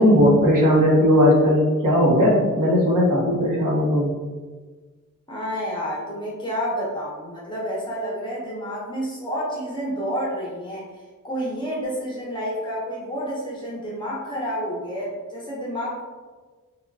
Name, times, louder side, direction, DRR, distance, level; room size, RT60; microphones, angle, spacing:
voice 1, 0.0-4.1, equal, 65° right, -4 dB, 1.0 m, -17 dB
voice 2, 5.3-10.9 11.2-16.0, equal, 15° left, -7 dB, 0.9 m, -29 dB
3.2 x 2.4 x 2.3 m, 1.4 s
wide cardioid pair, 130°, 34 cm